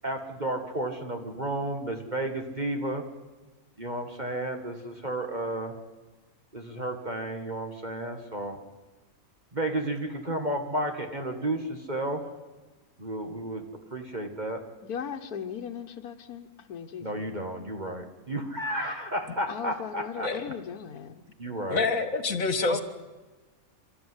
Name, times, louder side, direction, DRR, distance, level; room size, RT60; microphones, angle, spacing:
voice 1, 0.0-3.0 3.8-5.8 6.5-8.6 9.5-12.3 13.0-13.6 13.9-14.6 17.0-20.4 21.4-21.8 22.7-22.8, right 1 dB, 30° right, 4 dB, 1.8 m, -32 dB
voice 2, 14.8-17.2 19.5-21.1, left 7 dB, 90° left, 5 dB, 1.5 m, -38 dB
voice 3, 21.7-22.8, left 4 dB, 65° left, 10 dB, 2.1 m, -27 dB
28.5 x 13.0 x 9.7 m, 1.2 s
omnidirectional pair, 1.5 m